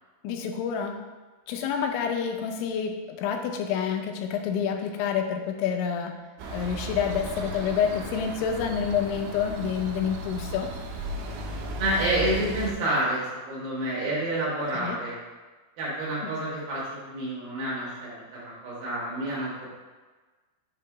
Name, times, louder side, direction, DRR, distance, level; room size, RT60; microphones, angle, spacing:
voice 1, 0.2-1.0 1.5-6.2 6.5-10.7 14.7-15.0 16.2-16.3, left 7 dB, 85° left, 4 dB, 2.8 m, -28 dB
sound 1, 6.4-12.7, right 2 dB, 85° right, 2.4 m, -35 dB
voice 2, 11.8-15.2 15.8-19.7, right 1 dB, 70° right, -6 dB, 2.6 m, -29 dB
7.0 x 2.6 x 5.7 m, 1.3 s
omnidirectional pair, 5.5 m